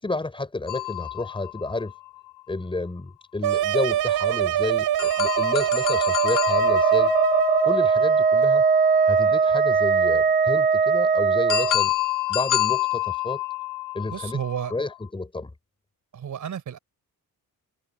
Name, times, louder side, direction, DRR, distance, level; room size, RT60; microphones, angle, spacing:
voice 1, 0.0-1.9 2.5-7.1 7.6-8.7 9.1-11.9 12.3-13.4 13.9-14.4 14.7-15.5, left 2 dB, 15° left, 5.1 m, -31 dB
sound 1, 0.7-2.4 5.0-8.9 11.5-15.0, left 14 dB, 55° left, 1.2 m, -28 dB
sound 2, 3.4-7.9, right 11 dB, 80° right, 3.6 m, -24 dB
Wind instrument woodwind instrument, 6.5-11.8, right 5 dB, 20° right, 1.4 m, -20 dB
voice 2, 14.1-14.7 16.1-16.8, right 8 dB, 55° right, 5.2 m, -31 dB
wide cardioid pair, 175°, 37 cm